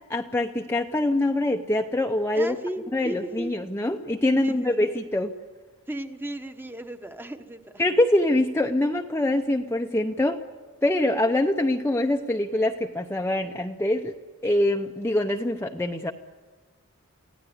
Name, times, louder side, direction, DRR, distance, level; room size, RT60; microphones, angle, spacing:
voice 1, 0.1-2.5 2.9-5.3 7.8-10.4 10.8-14.2 14.4-16.1, left 1 dB, 10° left, 3 dB, 0.7 m, -24 dB
voice 2, 2.3-3.6 4.4-4.9 5.9-7.8, right 1 dB, 10° right, 7 dB, 1.2 m, -35 dB
24.5 x 16.5 x 9.7 m, 1.4 s
head